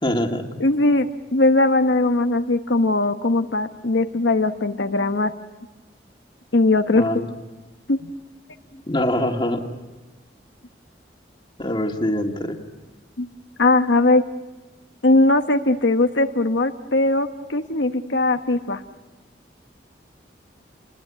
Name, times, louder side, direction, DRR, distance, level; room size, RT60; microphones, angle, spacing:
voice 1, 0.0-0.6 6.9-7.3 8.7-9.7 11.6-12.6, left 1 dB, 25° left, 3 dB, 2.3 m, -24 dB
voice 2, 0.6-5.3 6.5-7.1 7.9-8.1 13.2-13.3 13.6-14.2 15.0-18.8, left 2 dB, 85° left, 7 dB, 1.1 m, -19 dB
29.0 x 21.0 x 9.8 m, 1.2 s
head